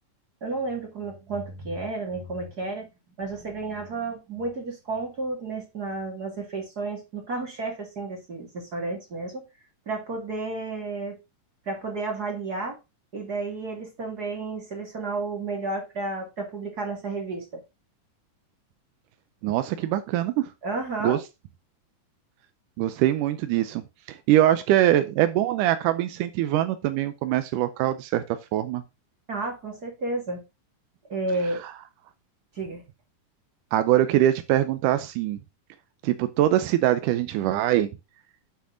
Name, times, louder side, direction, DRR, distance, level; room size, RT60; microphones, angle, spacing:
voice 1, 0.4-2.9 3.2-9.4 9.9-11.2 11.7-12.8 13.1-17.6 20.6-21.2 29.3-30.4 31.1-31.6 32.6-32.8, right 3 dB, 35° right, 1 dB, 2.2 m, -32 dB
voice 2, 19.4-20.5 21.0-21.2 22.8-23.8 24.1-28.2 28.5-28.8 31.6-31.7 33.7-35.4 36.0-37.9, right 13 dB, 85° right, 10 dB, 2.2 m, -23 dB
10.5 x 5.0 x 3.8 m, 0.25 s
omnidirectional pair, 3.7 m